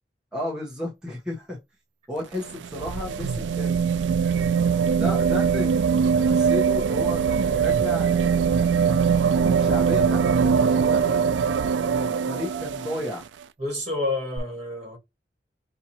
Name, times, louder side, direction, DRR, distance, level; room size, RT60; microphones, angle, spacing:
voice 1, 0.3-1.6 2.1-3.8 4.2-5.7 6.0-8.1 8.5-8.9 9.4-11.3 11.8-13.2, left 1 dB, 5° right, 1.2 m, -33 dB
sound 1, 2.2-13.2 14.4-14.5, right 6 dB, 85° right, 0.3 m, -22 dB
voice 2, 13.6-15.0, left 2 dB, 35° right, 2.2 m, -29 dB
5.5 x 2.9 x 2.9 m
head